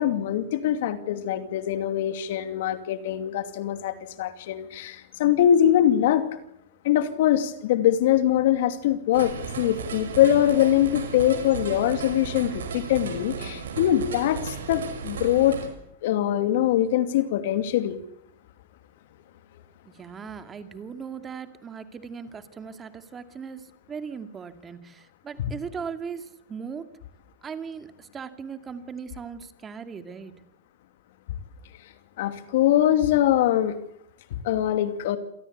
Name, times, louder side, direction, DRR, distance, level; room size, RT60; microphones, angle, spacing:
voice 1, 0.0-6.3 6.8-15.6 16.0-18.0 32.2-33.7 34.4-35.2, left 11 dB, 70° left, 10 dB, 2.6 m, -23 dB
sound 1, 9.1-15.7, right 5 dB, 85° right, 5.5 m, -35 dB
voice 2, 19.9-26.9 27.4-30.3, right 6 dB, 20° right, 9 dB, 2.3 m, -38 dB
27.0 x 18.0 x 8.4 m, 0.75 s
hypercardioid pair, 120°, 0 cm